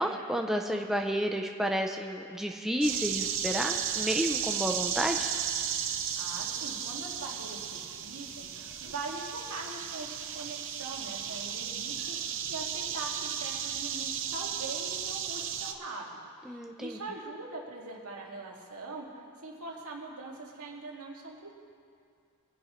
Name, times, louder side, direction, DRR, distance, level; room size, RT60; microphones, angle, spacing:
voice 1, 0.0-5.3 16.5-17.0, equal, ahead, 2 dB, 0.5 m, -31 dB
sound 1, 2.8-15.7, right 8 dB, 60° right, 0.8 m, -34 dB
voice 2, 6.2-8.5 8.8-16.0 16.4-19.1 19.4-21.5, right 3 dB, 80° right, -2 dB, 2.2 m, -42 dB
22.5 x 10.5 x 3.1 m, 2.2 s
head